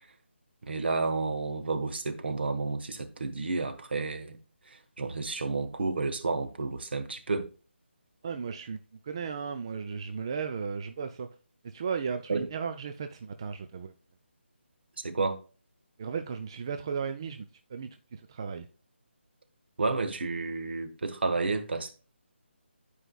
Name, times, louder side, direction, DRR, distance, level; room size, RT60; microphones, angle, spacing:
voice 1, 0.7-4.4 4.7-7.5 12.3-12.5 15.0-15.4 19.8-21.9, right 3 dB, 60° right, 1.3 m, -31 dB
voice 2, 8.2-11.3 11.6-13.9 16.0-18.7, right 6 dB, 25° right, 0.3 m, -35 dB
11.0 x 4.8 x 2.3 m
figure-of-eight pair, 165°, 7 cm